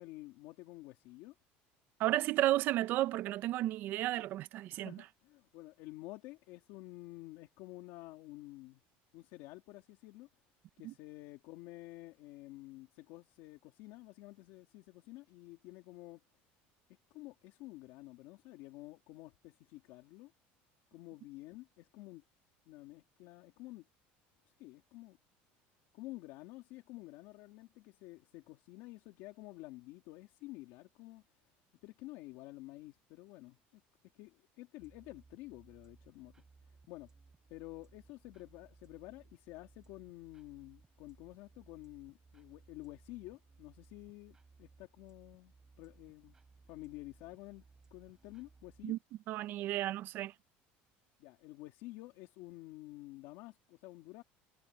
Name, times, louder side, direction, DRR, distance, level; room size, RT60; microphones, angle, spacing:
voice 1, 0.0-1.3 4.7-8.8 9.1-10.3 10.8-16.2 17.1-20.3 20.9-22.2 22.7-23.9 24.5-25.2 25.9-31.2 31.8-33.8 34.1-36.3 36.6-37.1 37.5-46.4 46.7-47.6 47.9-49.0 51.2-54.2, left 19 dB, 65° left, 2.6 m, -51 dB
voice 2, 2.0-5.0 10.8-10.9 48.8-49.0 49.3-50.3, right 15 dB, 45° right, 0.5 m, -33 dB
sound 1, 34.8-49.0, right 4 dB, 15° right, 5.3 m, -63 dB
cardioid pair, 170°, 5 cm